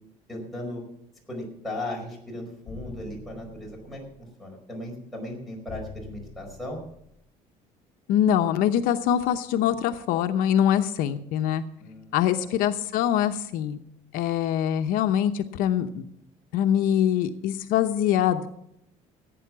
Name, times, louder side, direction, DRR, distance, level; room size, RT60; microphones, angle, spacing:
voice 1, 0.3-0.8 1.3-6.8 11.8-12.2 12.4-12.5, left 1 dB, ahead, -3 dB, 4.9 m, -37 dB
sound 1, 2.7-4.1 5.7-7.1, left 5 dB, 35° left, 6.0 m, -44 dB
voice 2, 8.1-11.6 12.1-13.8 14.1-16.0 16.5-18.5, left 10 dB, 75° left, 7 dB, 0.9 m, -23 dB
16.0 x 9.2 x 6.1 m, 0.78 s
cardioid pair, 160°, 15 cm